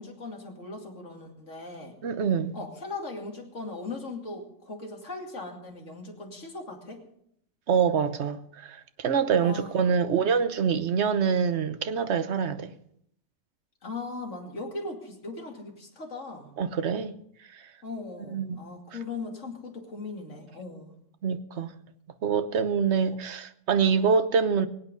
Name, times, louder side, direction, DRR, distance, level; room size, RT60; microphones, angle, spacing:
voice 1, 0.0-2.0 2.5-7.0 9.4-10.0 13.8-16.5 17.8-20.9, left 3 dB, 55° left, 2.9 m, -39 dB
voice 2, 2.0-2.6 7.7-12.7 16.6-17.1 17.5-17.6 18.3-18.6 21.2-21.7 22.2-24.7, right 6 dB, 55° right, 1.1 m, -25 dB
23.0 x 8.8 x 5.4 m
omnidirectional pair, 1.5 m